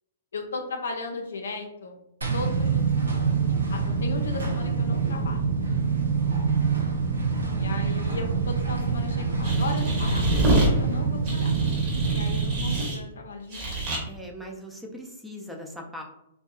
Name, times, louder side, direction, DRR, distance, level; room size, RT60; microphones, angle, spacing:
voice 1, 0.3-2.0 2.3-5.5 7.5-11.5 12.1-13.6, left 3 dB, 75° left, 4 dB, 0.5 m, -36 dB
sound 1, 2.2-12.8, right 5 dB, 90° right, 0.6 m, -26 dB
sound 2, 9.4-10.7 11.2-13.0 13.5-14.0, right 1 dB, 35° right, 1.0 m, -26 dB
voice 2, 14.1-16.0, equal, 5° right, 1 dB, 0.4 m, -40 dB
2.6 x 2.3 x 2.3 m, 0.83 s
hypercardioid pair, 120°, 0 cm